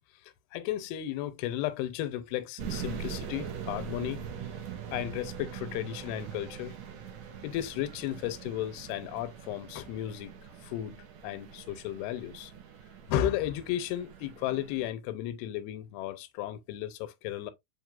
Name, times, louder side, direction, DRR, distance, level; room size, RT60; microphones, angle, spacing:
voice 1, 0.2-4.5 4.9-6.8 7.4-10.3 10.6-11.0 11.2-12.5 13.1-17.5, left 12 dB, 85° left, 2.6 m, -34 dB
sound 1, 2.6-14.9, right 7 dB, 85° right, 1.6 m, -42 dB
7.2 x 3.2 x 2.3 m
omnidirectional pair, 4.5 m